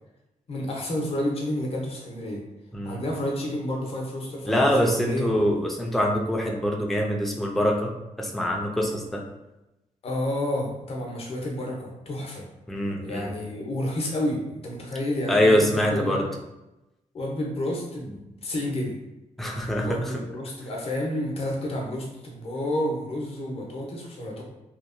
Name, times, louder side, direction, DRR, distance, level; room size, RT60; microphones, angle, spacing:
voice 1, 0.5-2.4 2.8-5.3 10.0-12.5 13.0-16.2 17.1-18.9 19.8-24.4, left 1 dB, 45° left, -1 dB, 0.6 m, -30 dB
voice 2, 4.5-9.2 12.7-13.3 15.3-16.3 19.4-20.0, equal, ahead, 0 dB, 0.3 m, -24 dB
2.8 x 2.0 x 2.5 m, 0.95 s
wide cardioid pair, 145°, 13 cm